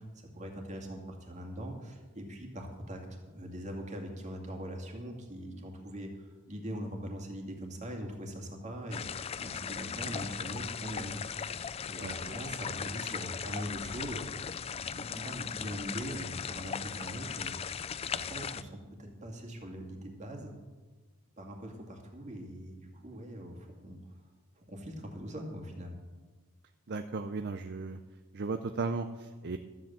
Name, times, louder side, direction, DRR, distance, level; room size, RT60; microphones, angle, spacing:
voice 1, 0.0-11.1 11.9-14.4 14.7-17.5 18.1-20.5 21.4-24.1 24.6-26.0, equal, 30° right, 2 dB, 2.1 m, -42 dB
sound 1, 8.9-18.6, left 7 dB, 25° left, 0.3 m, -38 dB
voice 2, 12.0-12.3 26.9-28.0 28.3-29.6, right 3 dB, 50° right, 8 dB, 0.5 m, -36 dB
13.5 x 7.9 x 7.3 m, 1.3 s
head